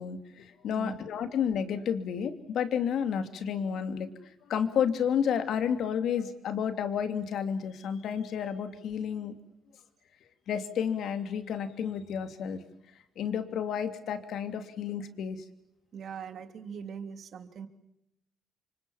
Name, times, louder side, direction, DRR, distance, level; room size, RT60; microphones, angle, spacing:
voice 1, 0.0-9.3 10.5-12.6 13.2-15.4, left 8 dB, 70° left, 8 dB, 2.9 m, -31 dB
voice 2, 15.9-17.7, right 7 dB, 65° right, 7 dB, 3.0 m, -41 dB
29.0 x 25.5 x 7.3 m, 0.82 s
cardioid pair, 90°, 0 cm